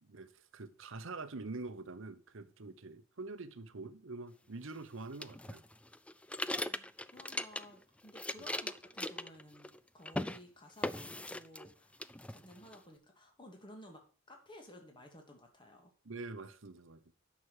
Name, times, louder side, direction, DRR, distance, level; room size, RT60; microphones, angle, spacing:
voice 1, 0.0-5.6 16.0-17.0, right 3 dB, 70° right, 1.0 m, -45 dB
sound 1, 5.2-7.8 8.1-9.8 10.0-10.4 10.8-11.7 12.0-12.8, left 1 dB, 5° left, 0.4 m, -39 dB
voice 2, 6.5-12.0 12.3-15.9, equal, 25° left, 2.6 m, -55 dB
9.9 x 6.2 x 6.7 m
head